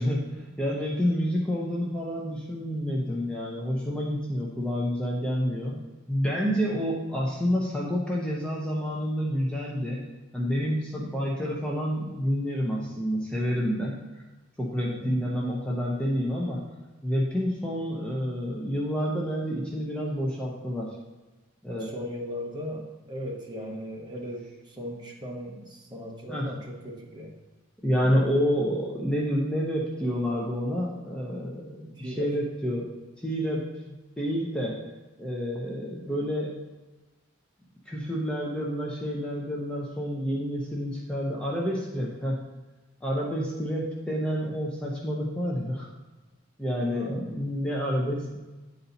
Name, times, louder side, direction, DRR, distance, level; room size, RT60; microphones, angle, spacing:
voice 1, 0.0-5.8 6.1-10.0 10.3-14.0 14.6-16.6 17.0-20.9 21.6-22.1 26.3-26.5 27.8-32.9 33.2-34.8 35.2-36.5 37.9-42.4 43.0-45.9 46.6-48.4, equal, 5° left, -4 dB, 0.7 m, -29 dB
voice 2, 21.7-27.3 32.0-32.4 46.9-47.3, equal, 20° right, -1 dB, 1.0 m, -37 dB
9.2 x 4.2 x 4.0 m, 1.2 s
head